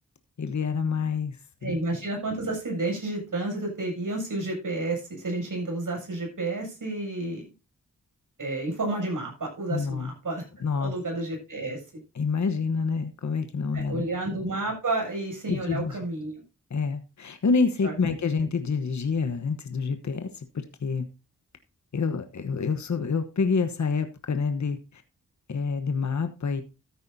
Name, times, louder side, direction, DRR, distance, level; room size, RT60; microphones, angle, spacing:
voice 1, 0.4-1.4 1.6-1.8 9.7-10.1 10.6-10.9 12.1-14.0 15.5-16.0 16.7-21.0 21.9-25.0 25.5-26.6, left 5 dB, 60° left, 8 dB, 1.1 m, -27 dB
voice 2, 1.6-7.5 8.4-10.4 10.8-11.8 13.7-16.4 17.8-17.9, right 2 dB, 70° right, 0 dB, 7.5 m, -31 dB
14.0 x 9.3 x 2.7 m, 0.29 s
wide cardioid pair, 75°, 33 cm